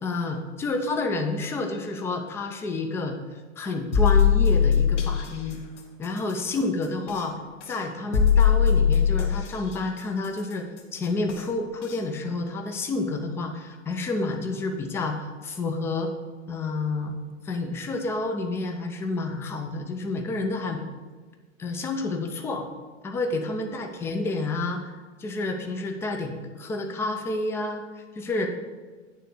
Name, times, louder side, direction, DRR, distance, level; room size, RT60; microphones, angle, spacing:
voice 1, 0.0-3.2 3.6-5.6 6.0-7.3 7.7-10.7 10.9-16.1 16.5-17.2 17.4-20.8 21.6-22.7 23.0-24.9 25.2-28.5, left 2 dB, 5° left, 4 dB, 0.3 m, -29 dB
sound 1, 3.9-5.2 7.1-7.2 8.1-9.5 11.3-11.4 11.9-12.0, left 7 dB, 70° left, 1.3 m, -19 dB
9.1 x 3.3 x 6.5 m, 1.4 s
hypercardioid pair, 115°, 37 cm